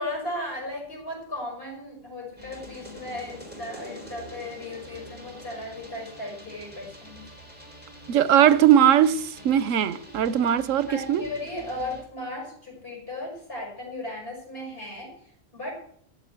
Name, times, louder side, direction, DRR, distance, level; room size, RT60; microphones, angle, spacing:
voice 1, 0.0-7.3 10.8-15.7, left 1 dB, 50° left, 6.1 m, -36 dB
sound 1, 2.4-12.0, right 1 dB, 5° right, 3.8 m, -45 dB
voice 2, 8.1-11.2, right 10 dB, 85° right, 1.1 m, -20 dB
14.5 x 7.4 x 8.0 m
omnidirectional pair, 1.3 m